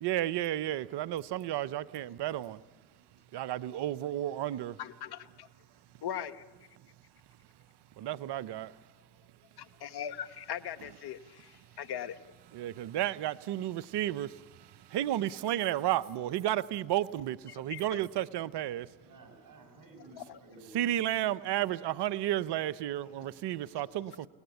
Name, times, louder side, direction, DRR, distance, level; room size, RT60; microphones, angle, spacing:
voice 1, 0.0-2.6 3.3-4.8 8.0-8.7 12.5-14.4 14.9-18.9 20.7-24.3, right 13 dB, 80° right, 0.8 m, -32 dB
voice 2, 4.8-5.5 6.0-6.4 9.8-12.2 17.5-18.0 20.2-20.4 23.7-23.8, left 9 dB, 70° left, 1.2 m, -40 dB
voice 3, 19.0-21.0, right 2 dB, 50° right, 6.9 m, -54 dB
29.0 x 19.0 x 8.3 m
supercardioid pair, 45°, 41 cm